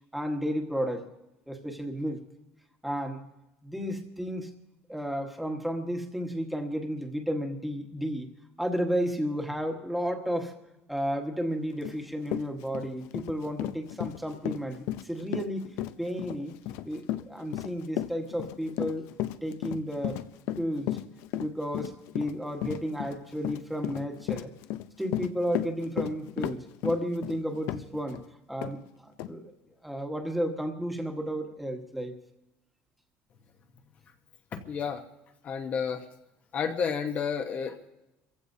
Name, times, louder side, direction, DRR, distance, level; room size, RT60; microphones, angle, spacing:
voice 1, 0.1-1.1 1.5-2.2 2.8-3.2 3.6-4.5 4.9-8.3 8.6-10.5 10.9-15.7 16.0-16.6 16.8-19.1 19.4-20.2 20.6-21.0 21.4-24.5 25.0-28.2 28.5-29.5 29.8-32.1, equal, ahead, 3 dB, 1.3 m, -32 dB
Run, 11.8-12.0 12.3-28.2 28.6-28.7 29.2-29.3, left 14 dB, 70° left, 0.6 m, -34 dB
voice 2, 34.5-35.0 35.4-36.1 36.5-37.9, left 6 dB, 35° left, 5 dB, 0.9 m, -31 dB
27.5 x 15.5 x 2.7 m, 0.95 s
cardioid pair, 165°, 5 cm